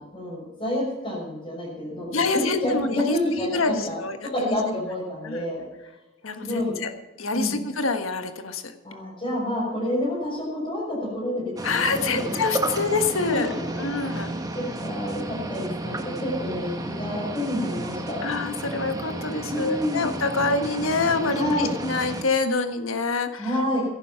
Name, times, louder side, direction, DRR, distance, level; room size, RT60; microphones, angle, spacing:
voice 1, 0.0-4.0 4.2-5.6 6.4-6.8 7.3-7.6 8.8-12.3 12.6-12.7 13.3-13.7 14.0-18.2 19.5-20.0 21.4-21.7 23.4-23.8, left 1 dB, 25° left, -7 dB, 6.1 m, -29 dB
voice 2, 2.1-4.6 5.2-5.4 6.2-6.9 7.2-8.6 11.6-13.5 13.8-14.3 18.2-23.4, left 3 dB, 90° left, 7 dB, 1.4 m, -26 dB
sound 1, 11.6-22.2, right 1 dB, 20° right, 1.4 m, -32 dB
15.5 x 11.5 x 5.8 m, 1.0 s
head